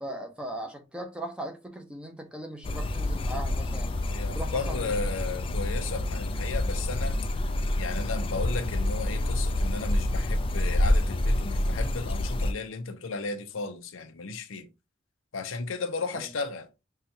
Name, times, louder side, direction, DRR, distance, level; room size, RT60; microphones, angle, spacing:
voice 1, 0.0-4.0 4.3-5.1 16.1-16.3, right 1 dB, 5° right, 0.7 m, -39 dB
sound 1, 2.6-12.5, left 1 dB, 25° left, 0.3 m, -28 dB
voice 2, 4.1-7.2 7.7-14.7 15.3-16.7, left 4 dB, 90° left, 0.7 m, -34 dB
5.6 x 2.3 x 2.7 m
head